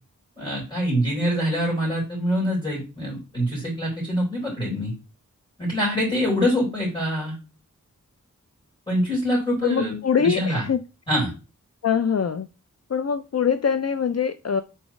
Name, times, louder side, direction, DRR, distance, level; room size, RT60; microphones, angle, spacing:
voice 1, 0.4-4.9 5.6-7.3 8.9-10.6 11.1-11.3, equal, 15° left, -4 dB, 4.2 m, -25 dB
voice 2, 9.6-10.8 11.8-12.5 12.9-14.6, left 7 dB, 50° left, 10 dB, 0.5 m, -23 dB
7.1 x 4.5 x 3.1 m, 0.29 s
wide cardioid pair, 60°, 32 cm